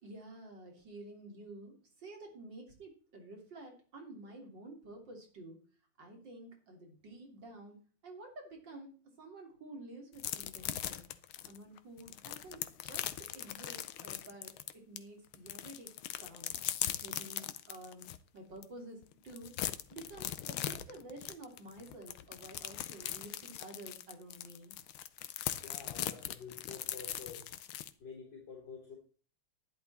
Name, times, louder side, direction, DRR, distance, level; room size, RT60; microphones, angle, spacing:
voice 1, 0.0-5.6 6.0-11.1 11.5-15.9 16.2-16.6 17.0-19.5 19.9-24.7, right 2 dB, 55° right, 2 dB, 3.9 m, -51 dB
sound 1, 10.2-15.0 15.3-18.2 18.6-18.7 19.0-27.9, left 12 dB, 80° left, 1.6 m, -40 dB
voice 2, 25.6-29.0, left 5 dB, 55° left, -2 dB, 4.3 m, -50 dB
12.0 x 10.5 x 4.2 m, 0.39 s
omnidirectional pair, 2.3 m